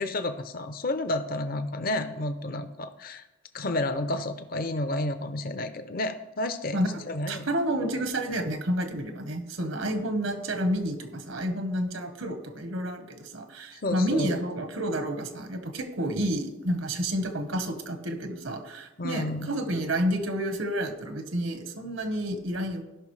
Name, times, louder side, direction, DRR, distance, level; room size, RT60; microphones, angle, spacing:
voice 1, 0.0-3.3 3.5-6.8 7.1-7.5 13.8-14.3 19.0-19.5, left 2 dB, 45° left, 10 dB, 0.5 m, -31 dB
voice 2, 7.3-22.8, right 1 dB, 80° right, 6 dB, 1.2 m, -30 dB
16.5 x 5.8 x 3.2 m, 1.0 s
head